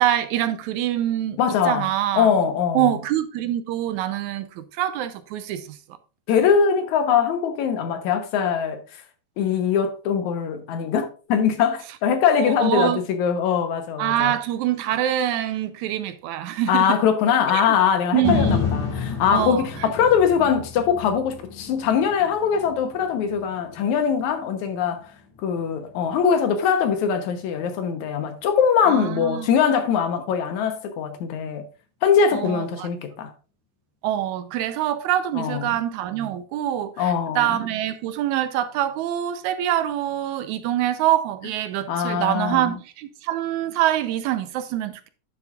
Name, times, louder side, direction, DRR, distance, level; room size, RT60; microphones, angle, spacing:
voice 1, 0.0-1.4 1.7-2.3 2.7-5.8 12.4-13.0 14.0-17.0 17.5-17.8 18.1-18.6 19.3-19.9 28.9-29.5 32.3-32.9 34.0-45.1, right 12 dB, 85° right, 2.0 m, -25 dB
voice 2, 1.4-1.9 2.1-2.9 6.3-8.8 9.4-14.3 16.7-25.1 25.4-31.7 32.0-33.3 35.4-35.7 37.0-37.5 41.9-42.6, left 7 dB, 80° left, 2.3 m, -22 dB
sound 1, 18.2-26.4 26.9-27.0, left 5 dB, 15° left, 1.4 m, -31 dB
9.9 x 7.1 x 2.4 m
omnidirectional pair, 3.4 m